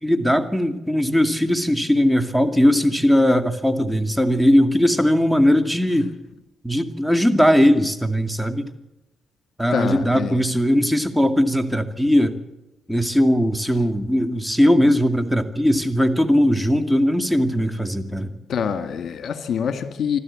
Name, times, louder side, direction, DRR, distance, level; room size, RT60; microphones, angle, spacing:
voice 1, 0.0-6.1 6.6-8.7 9.6-12.4 12.9-18.3, equal, 5° right, 8 dB, 2.2 m, -19 dB
voice 2, 9.7-10.4 18.5-20.2, left 7 dB, 65° left, 9 dB, 1.9 m, -25 dB
26.0 x 12.5 x 8.5 m, 0.92 s
supercardioid pair, 50°, 0 cm